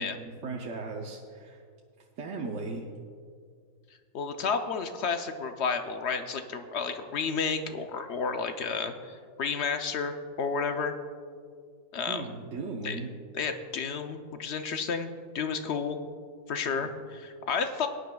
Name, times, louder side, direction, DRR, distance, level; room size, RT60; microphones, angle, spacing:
voice 1, 0.0-1.6 2.2-2.8 12.1-13.1 16.8-16.9, right 3 dB, 55° right, 0 dB, 1.0 m, -37 dB
voice 2, 4.1-10.9 11.9-12.3 12.8-13.0 13.3-15.1 15.3-16.0 16.5-17.9, left 5 dB, 65° left, 7 dB, 0.7 m, -31 dB
19.5 x 9.8 x 2.3 m, 2.1 s
omnidirectional pair, 1.7 m